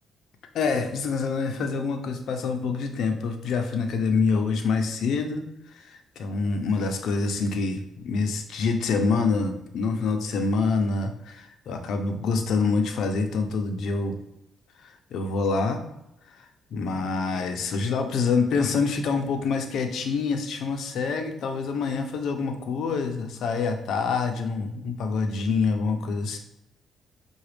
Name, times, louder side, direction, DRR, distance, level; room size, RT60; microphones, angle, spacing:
voice 1, 0.5-5.4 5.7-14.2 14.8-15.8 16.3-16.4 16.7-26.4, left 4 dB, 70° left, 6 dB, 0.6 m, -26 dB
5.7 x 2.3 x 3.3 m, 0.86 s
cardioid pair, 90°, 0 cm